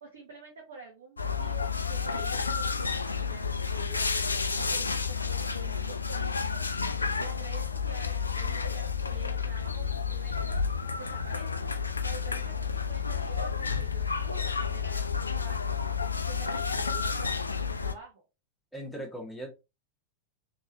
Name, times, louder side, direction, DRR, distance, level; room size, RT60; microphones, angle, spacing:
voice 1, 0.0-4.1 4.5-6.6 7.2-10.6 11.0-11.7 12.0-15.8 16.2-18.2, right 4 dB, 65° right, 0 dB, 1.0 m, -47 dB
sound 1, 1.2-17.9, left 5 dB, 80° left, 0.3 m, -31 dB
voice 2, 18.7-19.5, right 1 dB, ahead, -1 dB, 1.5 m, -39 dB
3.6 x 3.0 x 2.8 m, 0.27 s
figure-of-eight pair, 90°, 0 cm